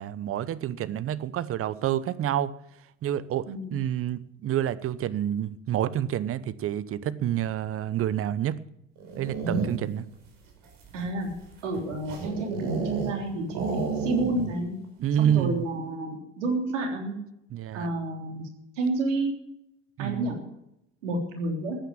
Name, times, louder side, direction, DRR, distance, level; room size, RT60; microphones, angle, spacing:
voice 1, 0.0-2.5 3.0-3.4 3.7-8.6 9.2-10.1 15.0-15.7 17.5-17.9 20.0-20.4, right 10 dB, 35° right, 0.9 m, -28 dB
sound 1, 9.0-10.0 10.6-13.2 13.5-14.6 14.8-14.9 15.2-15.6, right 4 dB, 60° right, 5.1 m, -31 dB
voice 2, 10.9-11.3 11.6-13.6 14.0-14.8 15.2-17.1 17.7-18.5 18.8-19.3 20.0-20.4 21.0-21.8, right 2 dB, 75° right, 3.5 m, -30 dB
14.0 x 9.2 x 7.3 m
hypercardioid pair, 75°, 37 cm